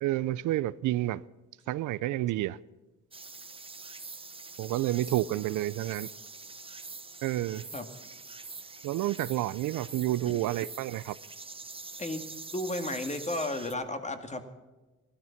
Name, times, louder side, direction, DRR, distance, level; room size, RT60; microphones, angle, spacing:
voice 1, 0.0-1.2 1.7-2.6 4.6-6.1 7.2-7.6 8.8-11.2, right 15 dB, 80° right, 0.6 m, -29 dB
sound 1, 3.1-13.7, right 3 dB, 20° right, 1.1 m, -45 dB
voice 2, 12.5-14.5, left 1 dB, 25° left, 2.0 m, -33 dB
16.5 x 12.5 x 5.8 m
cardioid pair, 90°, 30 cm